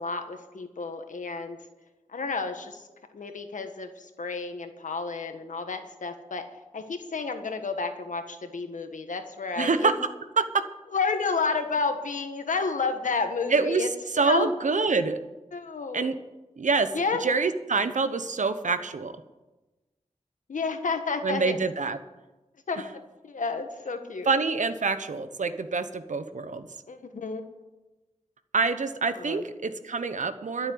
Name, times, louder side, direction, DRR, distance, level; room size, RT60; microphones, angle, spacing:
voice 1, 0.0-1.6 2.1-2.9 3.1-6.4 6.7-9.9 10.9-13.9 14.2-14.5 15.5-16.1 16.9-17.2 20.5-21.6 22.7-22.8 23.2-24.3 26.9-27.4 29.1-29.4, left 4 dB, 85° left, 6 dB, 1.5 m, -31 dB
voice 2, 9.6-9.9 10.4-10.6 13.5-13.9 14.1-15.2 15.9-16.1 16.6-16.9 17.2-19.1 21.2-22.0 22.8-22.9 24.2-26.7 28.5-30.7, right 4 dB, 75° right, 10 dB, 1.0 m, -26 dB
12.5 x 7.4 x 9.4 m, 1.1 s
wide cardioid pair, 80°, 13 cm